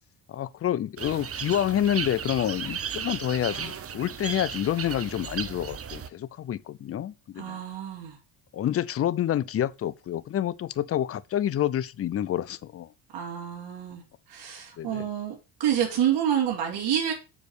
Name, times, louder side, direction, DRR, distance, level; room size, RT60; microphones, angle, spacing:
voice 1, 0.3-7.6 8.5-12.9 14.8-15.0, left 11 dB, 35° left, 0.4 m, -28 dB
sound 1, 1.0-6.1, right 8 dB, 30° right, 0.7 m, -35 dB
voice 2, 7.4-8.2 13.1-14.0 14.3-17.1, right 10 dB, 60° right, 2.7 m, -28 dB
7.0 x 4.8 x 6.4 m
cardioid pair, 140°, 46 cm